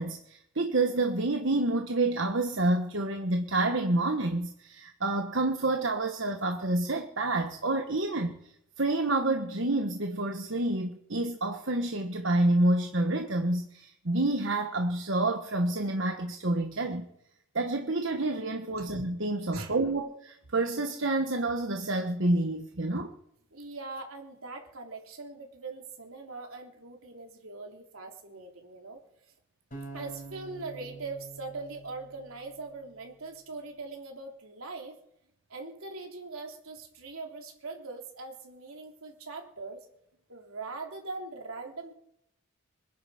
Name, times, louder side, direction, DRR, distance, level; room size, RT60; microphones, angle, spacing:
voice 1, 0.0-8.4 8.8-17.1 17.5-23.1, right 2 dB, 60° right, 5 dB, 1.3 m, -28 dB
voice 2, 23.5-29.0 29.9-35.0 35.5-39.9 40.3-41.9, right 3 dB, 75° right, 2 dB, 3.5 m, -41 dB
sound 1, 29.7-32.9, right 3 dB, 40° left, 5.3 m, -46 dB
26.0 x 11.0 x 5.0 m, 0.78 s
head